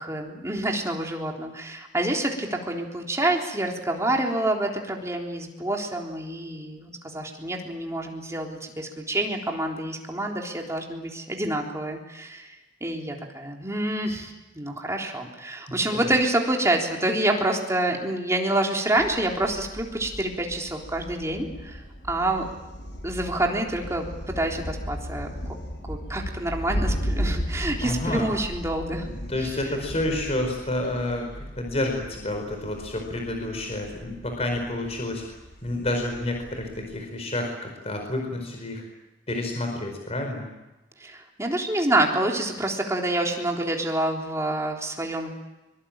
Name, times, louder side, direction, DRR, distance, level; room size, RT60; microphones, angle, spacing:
voice 1, 0.0-12.5 12.8-22.5 23.0-25.6 25.8-29.1 29.4-29.5 41.0-45.3, right 1 dB, 15° right, 1 dB, 3.7 m, -27 dB
voice 2, 15.7-16.1 27.8-28.3 29.3-38.8 39.3-40.5, left 1 dB, 35° left, 3 dB, 4.8 m, -29 dB
Thunder, 19.0-37.0, equal, 65° left, 7.0 m, -35 dB
24.0 x 24.0 x 8.9 m, 1.0 s
head